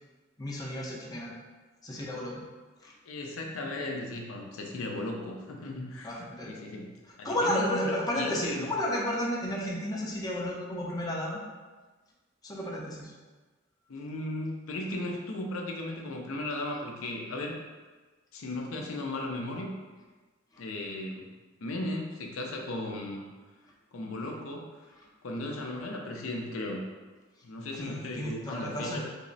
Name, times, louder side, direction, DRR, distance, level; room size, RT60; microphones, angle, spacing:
voice 1, 0.4-1.3 1.8-2.4 2.8-2.9 6.0-6.5 7.2-11.4 12.4-13.1 27.8-29.0, left 1 dB, 20° left, -4 dB, 0.5 m, -32 dB
voice 2, 3.0-6.1 6.4-6.9 7.2-8.7 13.9-17.6 18.3-19.7 20.6-21.3 21.6-23.2 23.9-24.9 25.2-26.8 27.4-29.0, left 1 dB, 85° left, 1 dB, 0.5 m, -36 dB
3.4 x 2.0 x 3.9 m, 1.3 s
head